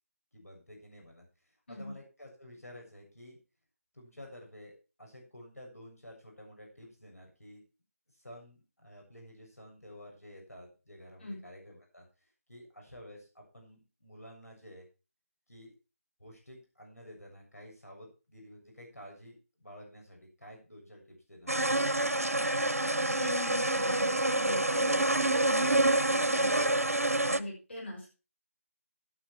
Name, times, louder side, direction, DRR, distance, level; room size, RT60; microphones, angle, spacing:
voice 1, 0.3-3.4 3.9-7.6 8.1-14.9 15.5-15.8 16.2-21.9, left 1 dB, 80° left, 1 dB, 6.9 m, -51 dB
sound 1, 21.5-27.4, right 1 dB, 75° right, 0.9 m, -27 dB
voice 2, 22.9-26.8 27.2-28.1, left 2 dB, 50° left, -1 dB, 6.1 m, -41 dB
12.0 x 9.6 x 4.7 m, 0.32 s
figure-of-eight pair, 160°, 8 cm